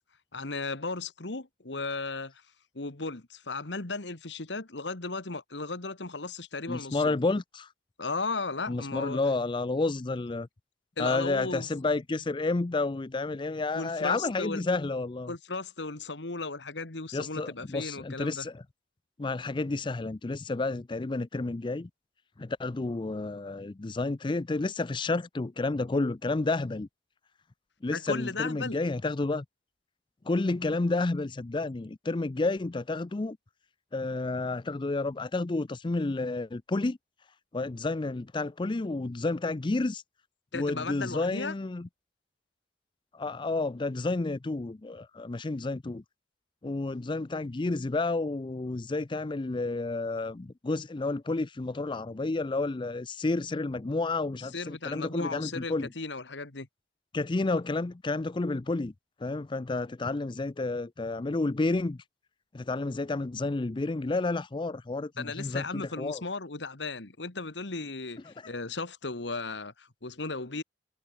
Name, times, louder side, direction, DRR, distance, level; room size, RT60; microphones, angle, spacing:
voice 1, 0.3-2.4 2.7-7.2 8.0-9.2 11.0-11.7 13.7-14.6 15.3-18.5 27.9-28.8 40.5-41.5 54.4-56.7 65.2-70.6, left 3 dB, 90° left, 1.9 m, -36 dB
voice 2, 6.7-7.7 8.7-10.5 11.0-15.3 17.1-18.5 19.2-21.9 22.4-26.9 27.8-29.4 30.3-33.4 33.9-37.0 37.5-40.0 40.5-41.9 43.1-46.0 46.6-55.9 57.1-58.9 59.2-62.0 62.5-66.2 68.4-68.5, left 3 dB, 25° left, 0.5 m, -30 dB
head